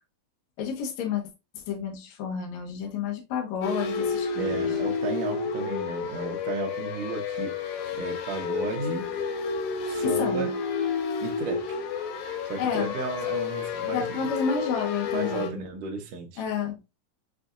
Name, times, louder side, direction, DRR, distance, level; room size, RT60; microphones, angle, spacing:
voice 1, 0.6-1.2 1.5-4.7 10.0-10.5 12.6-12.9 13.9-15.7 16.4-16.8, left 6 dB, 65° left, 2.2 m, -30 dB
sound 1, 3.6-15.5, left 5 dB, 90° left, 2.8 m, -30 dB
voice 2, 4.4-7.6 7.9-9.2 9.9-10.5 11.2-11.8 12.5-14.3 15.1-16.4, right 3 dB, 65° right, 1.7 m, -34 dB
7.1 x 2.5 x 2.4 m
omnidirectional pair, 4.0 m